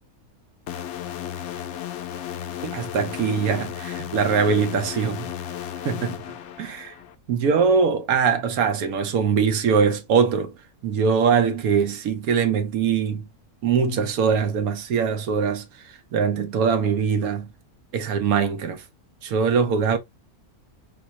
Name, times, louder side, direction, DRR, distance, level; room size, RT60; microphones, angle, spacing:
sound 1, 0.7-7.2, left 10 dB, 65° left, 0.7 m, -34 dB
voice 1, 2.6-5.3 5.8-6.2 6.6-6.9 7.3-10.5 10.8-13.3 13.6-17.5 17.9-18.8 19.2-20.0, right 6 dB, 80° right, 1.2 m, -22 dB
4.2 x 2.9 x 2.8 m
omnidirectional pair, 1.5 m